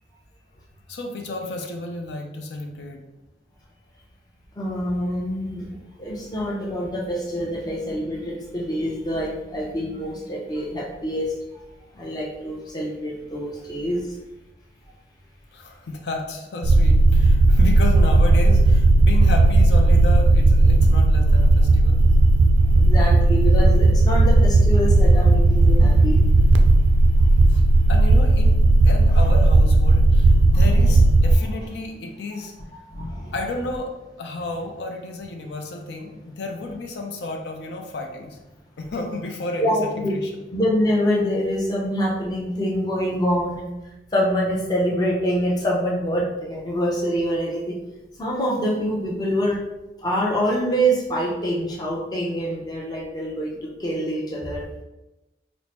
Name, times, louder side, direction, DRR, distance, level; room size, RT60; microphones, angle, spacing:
voice 1, 0.9-3.0 15.5-22.0 27.5-28.6 28.8-32.5 33.3-33.9 34.2-38.4 38.8-40.4, left 2 dB, 75° left, 2 dB, 0.5 m, -32 dB
voice 2, 4.6-11.6 11.9-14.2 22.7-26.2 27.5-27.6 30.5-30.9 32.3-32.4 32.9-33.3 39.6-40.1 40.5-43.7 44.1-47.8 48.2-49.6 50.0-54.6, equal, 20° left, -3 dB, 0.6 m, -25 dB
sound 1, 16.6-31.4, right 2 dB, 90° right, 0.3 m, -15 dB
4.5 x 2.0 x 2.9 m, 1.0 s
head